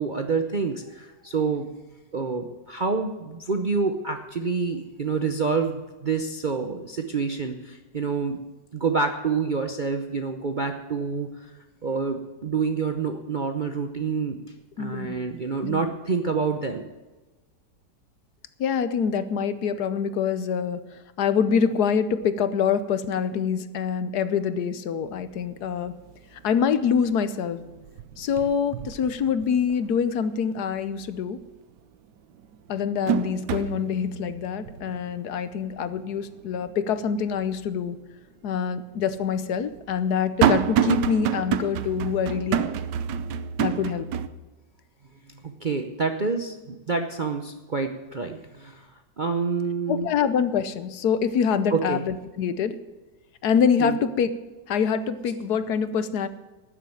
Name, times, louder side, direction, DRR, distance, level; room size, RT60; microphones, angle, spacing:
voice 1, 0.0-1.7 2.1-8.4 8.7-11.5 11.8-14.4 14.8-16.8 45.4-48.9 49.2-50.1 51.7-52.0 53.8-54.0, right 4 dB, 45° right, 5 dB, 0.6 m, -27 dB
voice 2, 14.8-15.2 15.6-15.9 18.6-20.8 21.2-25.9 26.3-27.6 28.2-31.4 32.7-38.0 38.4-42.7 43.6-44.1 49.9-52.8 53.4-54.4 54.7-56.3, left 7 dB, 70° left, 13 dB, 1.3 m, -25 dB
sound 1, 25.1-25.2 25.6-26.1 26.5-27.3 27.6-29.8 30.2-30.3 31.8-31.9 32.4-37.5 37.9-38.0 38.9-44.3, right 9 dB, 80° right, 1.3 m, -28 dB
13.0 x 7.5 x 9.1 m, 1.2 s
omnidirectional pair, 1.9 m